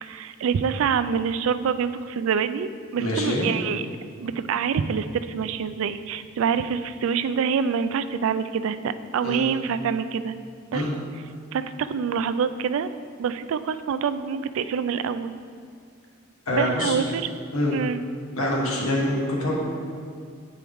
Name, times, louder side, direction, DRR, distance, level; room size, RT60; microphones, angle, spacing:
voice 1, 0.0-3.8 4.2-10.4 10.7-10.8 11.5-12.9 13.2-15.3 16.5-17.4 17.7-18.0, right 6 dB, 70° right, 12 dB, 0.3 m, -26 dB
voice 2, 3.0-3.5 9.2-9.5 10.7-10.9 16.5-17.0 17.5-17.8 18.4-19.6, left 1 dB, 85° left, -2 dB, 1.4 m, -25 dB
8.9 x 4.6 x 3.5 m, 2.2 s
head